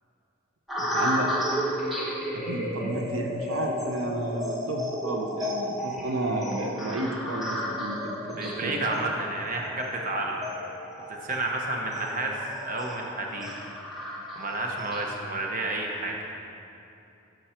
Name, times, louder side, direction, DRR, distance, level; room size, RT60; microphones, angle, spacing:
sound 1, 0.7-15.0, equal, ahead, 1.2 m, -33 dB
voice 1, 0.8-1.3 2.3-8.2 8.6-8.7, right 1 dB, 85° right, 2 dB, 0.8 m, -31 dB
voice 2, 8.3-10.4 11.1-13.5 14.3-16.3, right 2 dB, 40° right, 0 dB, 0.9 m, -31 dB
11.5 x 6.3 x 4.5 m, 2.8 s
head